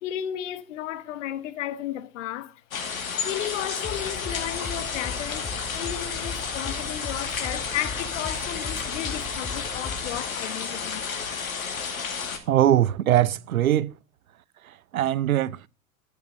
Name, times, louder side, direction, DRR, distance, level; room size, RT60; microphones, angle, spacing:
voice 1, 0.0-2.6 3.0-11.1, left 12 dB, 55° left, 1.3 m, -34 dB
sound 1, 2.7-12.4, left 6 dB, 70° left, 2.3 m, -32 dB
sound 2, 3.8-10.2, left 3 dB, 10° left, 3.1 m, -37 dB
voice 2, 12.5-14.0 14.6-15.7, right 12 dB, 75° right, 0.6 m, -22 dB
11.5 x 8.9 x 4.2 m
figure-of-eight pair, 85°, 42 cm